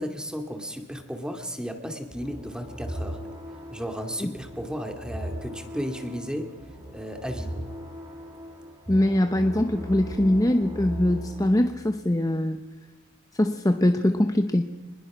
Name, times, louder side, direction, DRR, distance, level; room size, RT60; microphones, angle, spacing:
voice 1, 0.0-3.2 3.7-6.5 6.9-7.6, equal, 5° right, 5 dB, 2.5 m, -34 dB
sound 1, 2.1-11.6, equal, 25° right, 5.5 m, -38 dB
voice 2, 8.9-12.6 13.3-14.7, left 1 dB, 15° left, 7 dB, 0.8 m, -22 dB
26.5 x 20.5 x 6.2 m, 1.1 s
head